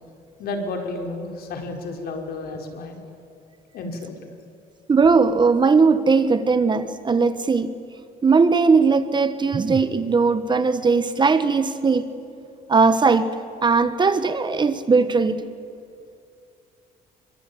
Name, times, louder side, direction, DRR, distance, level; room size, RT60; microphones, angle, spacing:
voice 1, 0.4-3.0 3.7-4.2, left 2 dB, 65° left, 3 dB, 4.9 m, -31 dB
voice 2, 4.9-7.7 8.2-12.1 12.7-13.3 13.6-15.5, right 4 dB, 25° right, 12 dB, 1.4 m, -19 dB
27.5 x 24.5 x 8.7 m, 2.4 s
cardioid pair, 110°, 17 cm